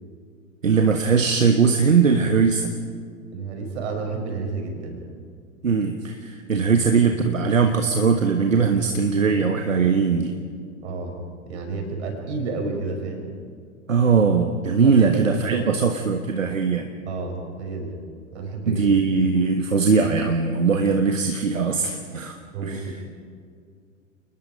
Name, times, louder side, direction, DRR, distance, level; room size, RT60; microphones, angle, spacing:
voice 1, 0.6-2.7 5.6-10.3 13.9-16.9 18.6-22.4 22.6-23.0, right 5 dB, 75° right, 5 dB, 1.5 m, -20 dB
voice 2, 3.3-5.0 6.6-6.8 10.8-11.2 11.5-13.3 14.8-15.7 17.1-17.9 18.3-18.9 22.5-23.0, right 3 dB, 55° right, 3 dB, 5.9 m, -30 dB
29.5 x 20.5 x 5.1 m, 2.1 s
figure-of-eight pair, 90°, 39 cm